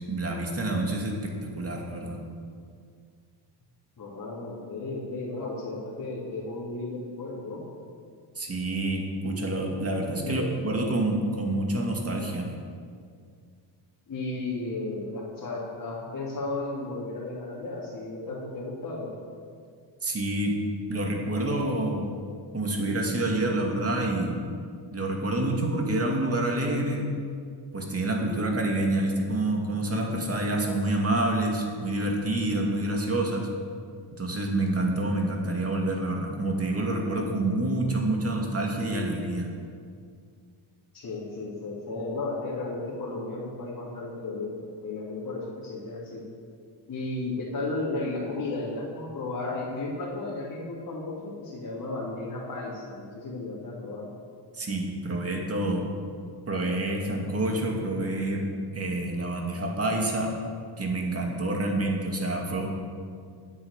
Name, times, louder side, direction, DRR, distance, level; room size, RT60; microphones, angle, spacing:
voice 1, 0.1-2.2 8.4-12.5 20.0-20.6 20.9-22.1 22.5-24.4 24.9-27.2 27.7-33.5 34.2-39.5 54.5-55.9 56.5-58.4 58.7-60.3 60.8-62.7, right 1 dB, 30° right, 0 dB, 2.5 m, -27 dB
voice 2, 4.0-7.6 10.2-10.7 14.1-19.1 40.9-46.2 46.9-54.1, left 2 dB, 40° left, -7 dB, 2.9 m, -34 dB
9.8 x 8.5 x 7.4 m, 2.2 s
cardioid pair, 90°, 49 cm